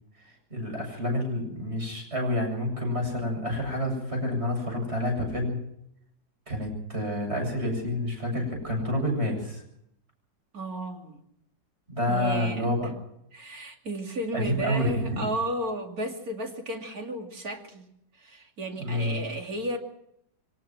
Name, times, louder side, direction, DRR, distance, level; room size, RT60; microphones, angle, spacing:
voice 1, 0.5-5.6 6.5-9.6 11.9-12.9 14.3-15.3 18.8-19.2, left 1 dB, 35° right, 2 dB, 8.1 m, -28 dB
voice 2, 10.5-11.2 12.1-12.6 13.3-17.8 18.2-19.8, right 1 dB, 55° right, 2 dB, 3.2 m, -33 dB
23.5 x 19.5 x 6.1 m, 0.74 s
omnidirectional pair, 1.9 m